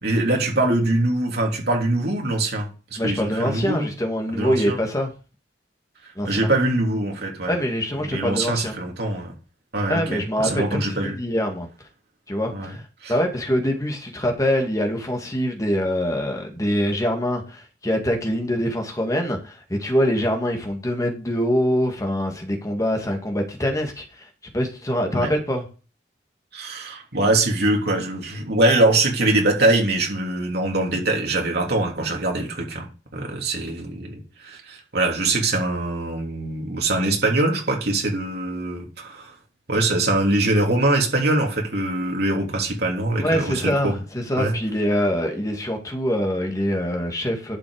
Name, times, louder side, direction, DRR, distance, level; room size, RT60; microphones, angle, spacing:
voice 1, 0.0-3.9 4.3-4.8 6.2-7.6 8.1-9.3 9.7-11.2 12.5-12.7 13.0-13.1 25.1-25.3 26.5-32.9 33.1-39.3 39.7-43.9 44.4-44.5, right 2 dB, 60° right, 3.2 m, -23 dB
voice 2, 3.0-5.1 6.2-6.5 7.5-8.7 9.9-11.7 12.3-12.8 13.1-24.3 24.5-25.6 43.2-47.6, equal, 20° left, 2.0 m, -24 dB
11.0 x 6.1 x 5.0 m
head